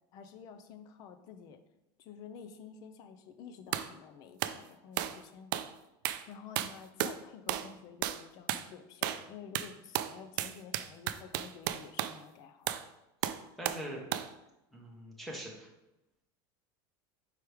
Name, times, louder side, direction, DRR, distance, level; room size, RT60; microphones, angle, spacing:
voice 1, 0.1-1.6 2.0-5.6 6.3-12.7, left 7 dB, 35° left, 9 dB, 0.5 m, -50 dB
sound 1, 3.7-3.9 4.4-4.6 5.0-5.2 5.5-5.7 6.0-6.3 6.6-7.2 7.5-7.7 8.0-8.2 8.5-8.7 9.0-9.3 9.5-12.2 12.7-12.9 13.2-13.9 14.1-14.3, right 13 dB, 65° right, 0.4 m, -34 dB
voice 2, 13.6-14.0 14.7-15.7, right 1 dB, ahead, -2 dB, 0.9 m, -42 dB
4.9 x 4.9 x 4.6 m, 0.92 s
cardioid pair, 180°, 11 cm